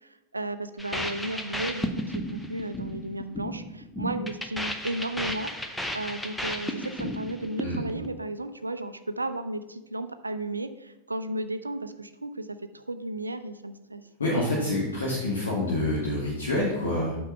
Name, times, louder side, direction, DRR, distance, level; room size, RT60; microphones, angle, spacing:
voice 1, 0.0-14.0, right 1 dB, 80° right, 11 dB, 0.4 m, -34 dB
sound 1, 0.8-8.1, equal, 5° left, 0.7 m, -34 dB
voice 2, 14.2-17.2, left 1 dB, 70° left, -6 dB, 1.9 m, -27 dB
8.2 x 4.4 x 5.7 m, 0.98 s
figure-of-eight pair, 90°, 0 cm